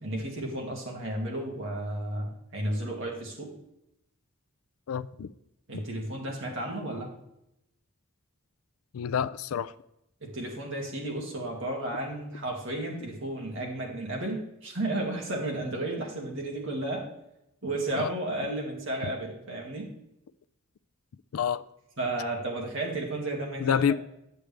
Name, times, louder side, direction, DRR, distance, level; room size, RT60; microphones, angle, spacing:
voice 1, 0.0-3.5 5.7-7.1 10.2-17.1 17.6-19.9 22.0-23.9, right 1 dB, 60° right, 2.2 m, -33 dB
voice 2, 4.9-5.3 8.9-9.7 17.9-18.1 21.3-21.6 23.6-23.9, left 8 dB, 75° left, 0.4 m, -27 dB
8.7 x 7.8 x 3.4 m
head